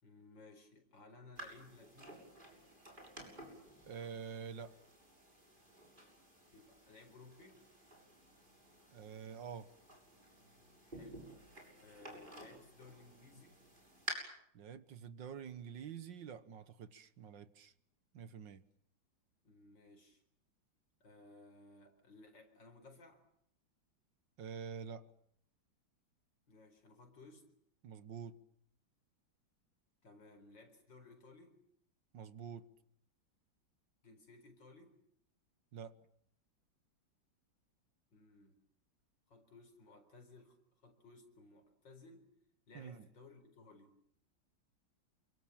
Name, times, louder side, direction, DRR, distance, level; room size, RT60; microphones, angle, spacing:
voice 1, 0.0-2.4 6.5-7.7 10.8-11.3 11.8-13.6 19.4-20.2 21.0-23.2 26.5-27.5 30.0-31.6 34.0-35.0 38.1-38.6 39.3-42.3 42.7-44.0, left 3 dB, 70° left, 6 dB, 5.1 m, -59 dB
sound 1, 1.4-14.1, right 1 dB, 25° right, 7.4 m, -53 dB
voice 2, 3.9-4.8 8.9-9.7 14.5-17.7 18.1-18.6 24.4-25.1 27.8-28.4 32.1-32.7 35.7-36.0 42.7-43.0, right 7 dB, 70° right, 13 dB, 1.9 m, -47 dB
28.0 x 24.5 x 7.4 m, 0.70 s
omnidirectional pair, 2.1 m